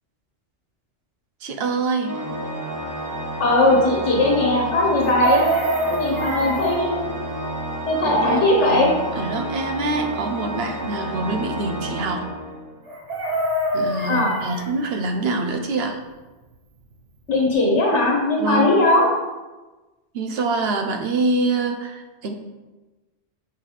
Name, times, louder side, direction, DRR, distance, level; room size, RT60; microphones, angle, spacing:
voice 1, 1.4-2.2 8.0-12.3 13.7-16.0 18.4-18.8 20.1-22.3, right 3 dB, 65° right, 5 dB, 0.9 m, -25 dB
Organ, 2.0-12.9, right 1 dB, 25° right, 0.5 m, -30 dB
voice 2, 3.4-5.5 5.9-7.2 7.9-8.9 14.1-14.3 17.3-19.0, left 1 dB, 90° left, -2 dB, 1.4 m, -19 dB
Chicken rooster, 5.0-6.8 12.9-14.7 16.9-17.0 17.3-17.5, right 1 dB, 80° right, 1.4 m, -26 dB
5.5 x 5.4 x 3.3 m, 1.2 s
omnidirectional pair, 1.2 m